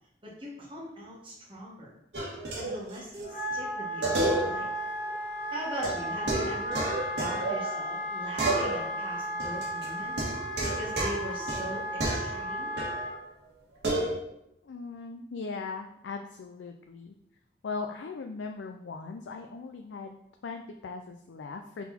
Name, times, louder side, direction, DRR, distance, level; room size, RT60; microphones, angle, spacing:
voice 1, 0.2-1.9 2.5-4.7 5.5-10.1 10.6-12.7, equal, 30° right, -5 dB, 1.8 m, -40 dB
sound 1, 2.1-3.2 3.5-3.6 4.0-4.8 5.1-5.2 5.8-8.1 8.4-9.1 9.4-13.1 13.8-14.1, right 2 dB, 75° right, 1.9 m, -31 dB
Wind instrument woodwind instrument, 3.2-13.1, equal, 45° left, 1.1 m, -35 dB
voice 2, 14.6-17.1 17.6-21.9, left 4 dB, 90° left, 5 dB, 0.4 m, -39 dB
5.6 x 4.1 x 4.3 m, 0.80 s
head